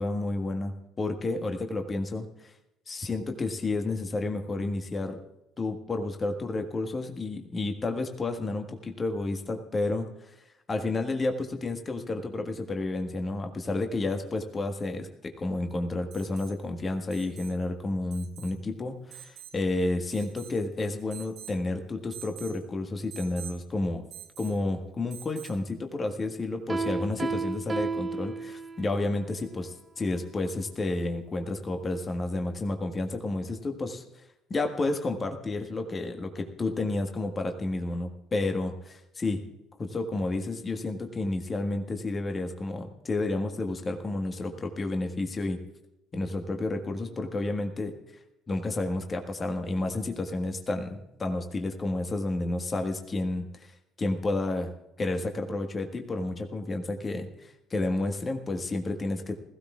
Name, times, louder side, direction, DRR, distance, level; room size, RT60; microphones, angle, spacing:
voice 1, 0.0-2.5 2.9-5.2 5.6-10.3 10.7-24.0 24.4-34.2 34.5-39.4 39.8-45.6 46.1-48.0 48.5-54.7 55.0-59.3, left 2 dB, 30° left, 4 dB, 1.6 m, -31 dB
Alarm, 16.1-16.6 17.1-17.6 18.1-18.6 19.1-19.6 20.1-20.6 21.1-21.6 22.1-22.6 23.1-23.6 24.1-24.6 25.1-25.6 27.3-27.4, right 10 dB, 55° right, 2.2 m, -46 dB
Piano, 26.7-29.0, right 4 dB, 30° right, 1.0 m, -32 dB
21.0 x 15.5 x 2.4 m, 0.89 s
figure-of-eight pair, 55°, 0 cm